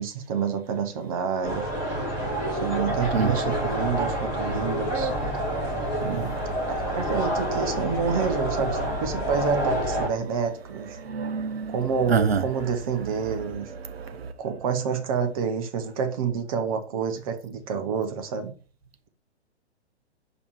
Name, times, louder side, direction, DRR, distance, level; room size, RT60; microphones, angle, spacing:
voice 1, 0.0-1.7 2.5-5.1 6.0-6.4 6.7-11.0 11.7-13.7 14.4-18.5, right 6 dB, 30° right, 0.9 m, -28 dB
sound 1, 1.4-10.1, right 1 dB, 15° right, 3.0 m, -28 dB
voice 2, 11.0-11.8 12.1-12.4 13.8-14.3, right 6 dB, 60° right, 0.9 m, -26 dB
5.1 x 5.0 x 4.6 m
figure-of-eight pair, 120°, 34 cm